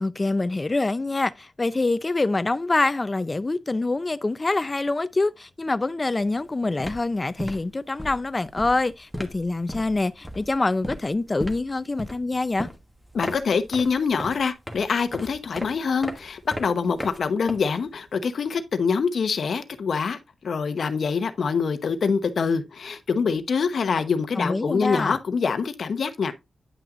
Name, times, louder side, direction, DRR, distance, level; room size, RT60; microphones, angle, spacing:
voice 1, 0.0-12.7 24.4-25.2, left 2 dB, 30° left, 0.5 m, -25 dB
sound 1, 6.2-6.4 6.7-18.1, equal, 5° left, 1.3 m, -37 dB
voice 2, 13.1-20.2 20.4-26.3, left 5 dB, 70° left, 0.9 m, -25 dB
9.6 x 5.9 x 2.5 m
wide cardioid pair, 90°, 0 cm